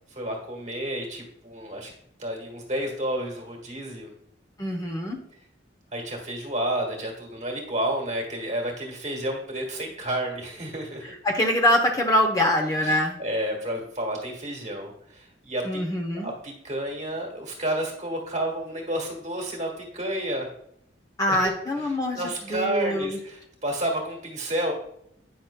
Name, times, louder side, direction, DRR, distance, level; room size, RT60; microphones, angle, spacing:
voice 1, 0.1-1.9 2.2-4.1 5.9-11.1 12.8-15.8 16.1-20.5 21.3-21.4 21.8-24.7, right 1 dB, 40° right, 1 dB, 1.6 m, -31 dB
voice 2, 4.6-5.2 11.2-13.2 15.6-16.3 21.2-23.2, left 1 dB, 20° left, 2 dB, 0.8 m, -24 dB
9.2 x 6.0 x 2.2 m, 0.73 s
head